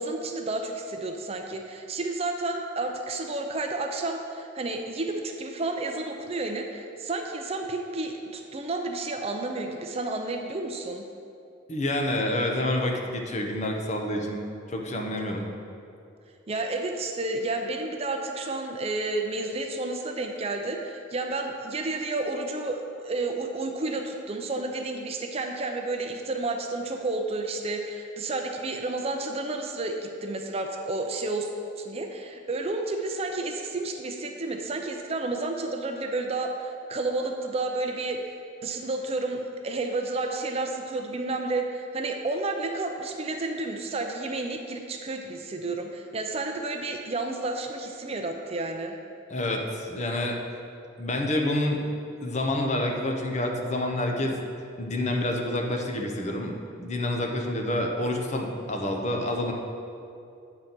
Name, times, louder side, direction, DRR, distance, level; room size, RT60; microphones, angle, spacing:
voice 1, 0.0-11.0 16.5-31.5 31.8-38.2 38.6-49.0, right 2 dB, 30° right, 4 dB, 0.5 m, -31 dB
voice 2, 11.7-14.4 14.7-15.5 49.3-50.4 51.0-51.8 52.2-54.4 54.8-59.5, left 1 dB, 35° left, 2 dB, 0.7 m, -28 dB
8.7 x 3.9 x 6.0 m, 2.5 s
head